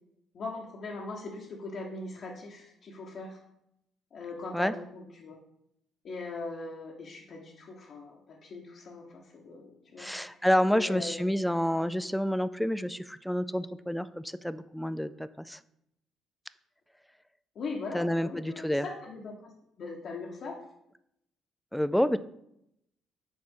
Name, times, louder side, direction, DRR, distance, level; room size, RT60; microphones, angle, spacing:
voice 1, 0.3-3.4 4.1-5.4 6.0-10.3 10.7-11.4 17.5-20.6, left 3 dB, 60° left, -2 dB, 1.0 m, -40 dB
voice 2, 10.0-15.6 17.9-18.9 21.7-22.2, equal, 5° left, 14 dB, 0.4 m, -29 dB
6.3 x 4.3 x 3.7 m, 0.78 s
hypercardioid pair, 55°, 0 cm